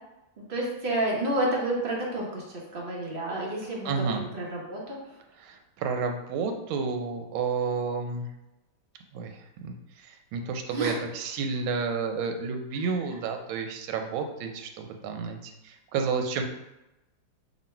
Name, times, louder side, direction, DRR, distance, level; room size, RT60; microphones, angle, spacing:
voice 1, 0.5-2.4 2.7-5.0 10.7-11.0, right 1 dB, 60° right, -3 dB, 0.5 m, -29 dB
voice 2, 3.8-4.2 5.4-8.3 9.1-16.4, right 5 dB, 90° right, 5 dB, 1.4 m, -31 dB
3.0 x 2.8 x 4.3 m, 0.95 s
omnidirectional pair, 2.2 m